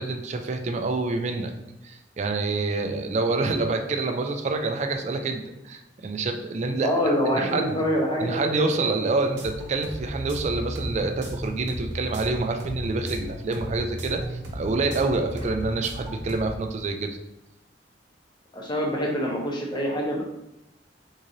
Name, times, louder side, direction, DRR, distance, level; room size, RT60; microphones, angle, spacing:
voice 1, 0.0-1.5 1.8-7.8 8.2-17.2, right 3 dB, 40° right, 5 dB, 0.4 m, -27 dB
voice 2, 6.8-8.7 15.4-15.5 18.5-20.2, equal, 25° left, -1 dB, 0.8 m, -26 dB
sound 1, 9.3-16.5, equal, 70° right, 0.7 m, -35 dB
3.8 x 3.0 x 2.6 m, 0.90 s
head